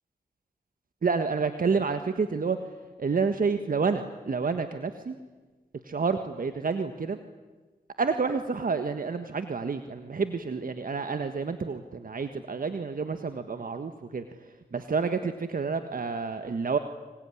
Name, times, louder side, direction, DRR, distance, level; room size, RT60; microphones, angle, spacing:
voice 1, 1.0-2.6 3.0-5.1 5.8-7.2 8.0-16.8, right 5 dB, 60° right, 8 dB, 1.6 m, -29 dB
25.5 x 23.5 x 9.9 m, 1.3 s
cardioid pair, 55°, 16 cm